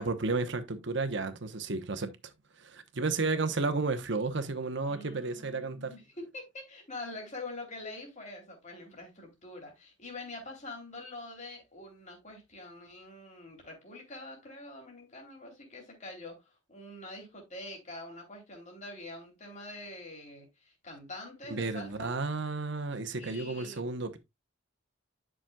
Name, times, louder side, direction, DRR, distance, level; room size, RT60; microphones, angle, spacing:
voice 1, 0.0-2.1 2.6-5.9 21.5-24.2, right 3 dB, 60° right, 1.0 m, -32 dB
voice 2, 4.9-22.1 23.1-23.8, left 2 dB, 35° left, 2.9 m, -45 dB
10.0 x 6.2 x 2.3 m
head